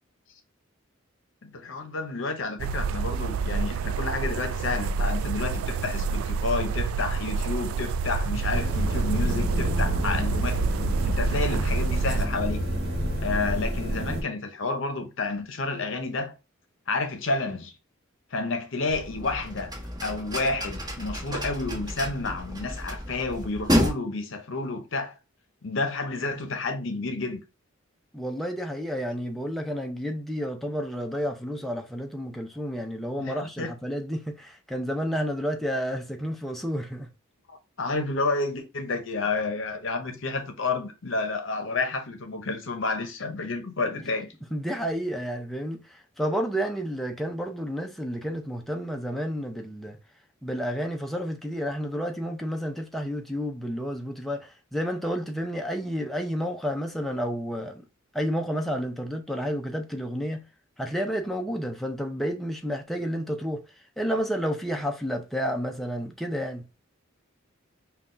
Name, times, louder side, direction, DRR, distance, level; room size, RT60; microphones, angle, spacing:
voice 1, 1.4-10.6 11.0-12.6 13.2-16.3 16.9-17.7 18.3-19.7 20.0-25.1 25.6-27.4 33.2-33.7 37.5-44.3, left 3 dB, 65° left, 0.7 m, -30 dB
sound 1, 2.6-12.3, right 4 dB, 85° right, 0.3 m, -28 dB
sound 2, 8.5-14.2, equal, 55° right, 1.2 m, -29 dB
sound 3, 18.9-23.9, equal, 20° right, 1.2 m, -30 dB
voice 2, 28.1-37.1 44.5-50.0 50.4-57.8 58.1-60.4 60.8-63.6 64.0-66.7, equal, ahead, 0.5 m, -30 dB
5.6 x 2.3 x 2.5 m
head